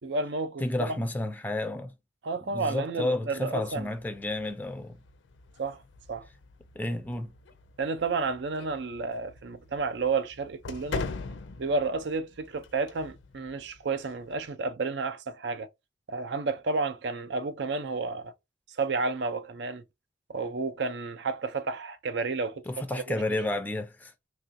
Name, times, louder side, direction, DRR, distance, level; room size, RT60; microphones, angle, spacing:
voice 1, 0.0-0.9 2.2-3.9 5.6-5.8 6.1-6.3 7.8-11.1 11.6-15.7 16.1-18.3 18.8-19.8 20.3-22.7 22.9-23.2, right 4 dB, 70° right, 0.5 m, -31 dB
voice 2, 0.6-1.9 2.4-5.0 6.7-7.3 22.7-24.1, left 2 dB, 10° left, 0.4 m, -31 dB
sound 1, 3.6-14.5, left 4 dB, 80° left, 0.4 m, -43 dB
3.3 x 2.4 x 2.5 m
head